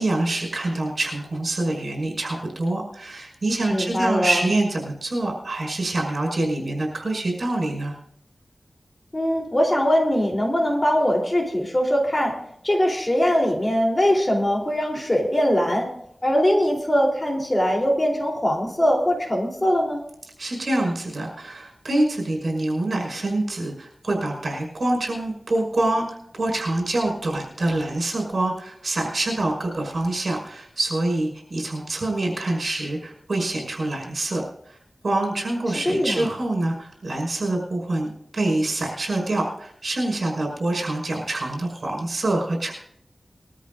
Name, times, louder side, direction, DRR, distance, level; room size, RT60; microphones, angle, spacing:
voice 1, 0.0-8.0 20.4-34.8 35.0-42.7, right 2 dB, 70° right, 0 dB, 5.4 m, -26 dB
voice 2, 3.7-4.4 9.1-12.4 12.6-15.9 16.2-20.0 35.9-36.3, equal, 30° left, 0 dB, 3.8 m, -21 dB
22.0 x 13.5 x 2.7 m, 0.69 s
wide cardioid pair, 75°, 0 cm